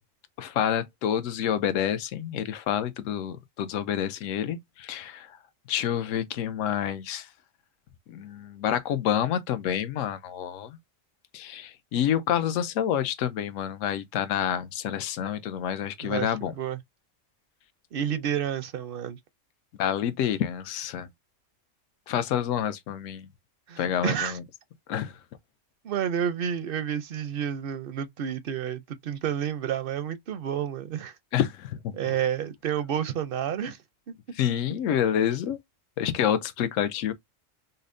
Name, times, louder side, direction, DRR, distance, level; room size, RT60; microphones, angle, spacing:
voice 1, 0.4-5.4 5.7-7.3 8.1-10.8 11.3-16.5 19.8-21.1 22.1-23.3 23.8-24.4 24.9-25.1 31.3-32.0 34.4-35.6 36.0-37.1, left 9 dB, 80° left, 0.9 m, -28 dB
voice 2, 16.0-16.8 17.9-19.2 23.7-24.4 25.8-31.1 31.9-33.8, right 9 dB, 65° right, 0.6 m, -30 dB
5.4 x 2.0 x 2.5 m
omnidirectional pair, 1.3 m